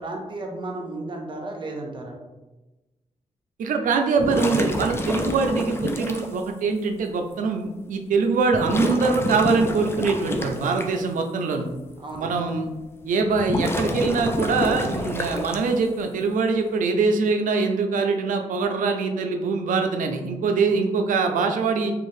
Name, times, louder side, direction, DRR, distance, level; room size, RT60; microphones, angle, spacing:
voice 1, 0.0-2.2 12.0-12.4, right 2 dB, 40° right, 1 dB, 0.6 m, -33 dB
voice 2, 3.6-11.7 12.2-12.7 13.0-21.9, right 4 dB, 90° right, 4 dB, 0.4 m, -23 dB
sound 1, 4.2-6.3 7.3-7.4 8.5-10.8 13.3-15.9, left 1 dB, 20° left, 0.3 m, -28 dB
2.6 x 2.4 x 3.1 m, 1.1 s
cardioid pair, 95°, 13 cm